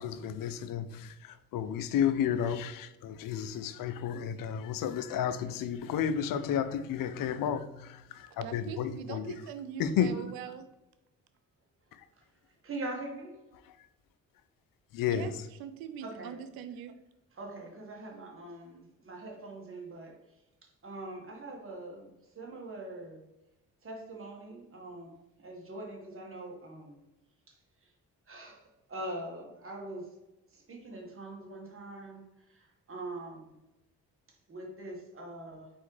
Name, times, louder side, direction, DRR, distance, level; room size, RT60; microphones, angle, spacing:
voice 1, 0.0-9.3 9.8-10.2 14.9-15.3, left 8 dB, 70° left, 0.5 m, -32 dB
voice 2, 8.3-10.7 15.1-15.3 15.6-16.9, right 9 dB, 85° right, 0.5 m, -42 dB
voice 3, 12.6-13.4 16.0-16.4 17.3-20.2 20.6-23.3 23.8-25.1 25.4-27.0 27.5-27.6 28.3-30.2 30.5-33.5 34.5-35.7, right 2 dB, 40° right, 1.5 m, -43 dB
4.2 x 3.7 x 3.2 m
supercardioid pair, 60°, 35 cm